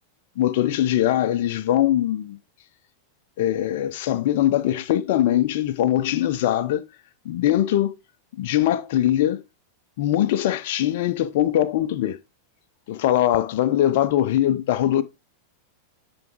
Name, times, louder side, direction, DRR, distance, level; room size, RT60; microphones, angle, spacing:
voice 1, 0.4-2.4 3.4-6.8 7.3-8.0 8.4-9.4 10.0-12.2 12.9-15.0, left 12 dB, 50° left, 0.5 m, -21 dB
10.5 x 3.5 x 3.0 m
figure-of-eight pair, 90°, 0 cm